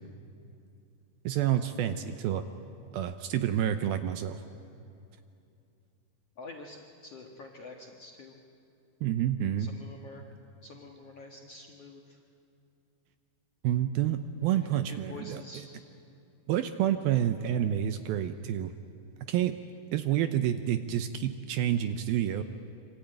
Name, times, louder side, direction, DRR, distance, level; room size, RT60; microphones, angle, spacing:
voice 1, 1.2-2.4 2.9-4.4 9.0-9.7 13.6-15.4 16.5-18.7 19.3-19.5 19.9-22.4, right 11 dB, 75° right, 9 dB, 2.3 m, -28 dB
voice 2, 6.4-8.3 9.6-10.3 10.6-12.2 14.5-14.6 15.1-15.6, left 2 dB, 60° left, 1 dB, 1.7 m, -47 dB
26.5 x 25.0 x 9.1 m, 2.7 s
omnidirectional pair, 4.9 m